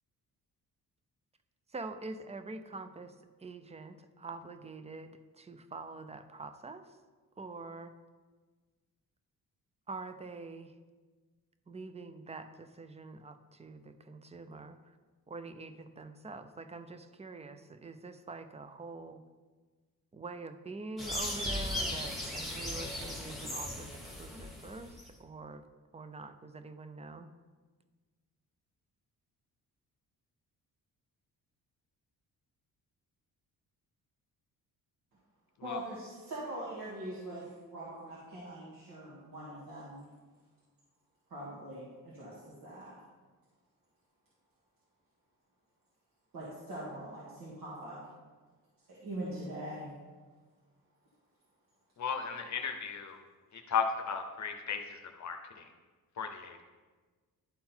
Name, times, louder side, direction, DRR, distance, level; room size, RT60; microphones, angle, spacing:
voice 1, 1.7-7.0 7.4-7.9 9.9-10.7 11.7-15.0 15.3-19.2 20.1-25.7 25.9-27.3, right 3 dB, 20° right, 9 dB, 0.5 m, -45 dB
sound 1, 21.0-25.1, left 1 dB, ahead, 1.4 m, -37 dB
voice 2, 35.6-40.0 41.3-43.0 46.3-48.0 48.9-49.9, right 1 dB, 65° right, -7 dB, 2.0 m, -42 dB
voice 3, 52.0-53.2 53.5-55.7 56.2-56.6, left 6 dB, 50° left, 5 dB, 0.7 m, -35 dB
11.0 x 3.8 x 4.4 m, 1.4 s
cardioid pair, 110°, 36 cm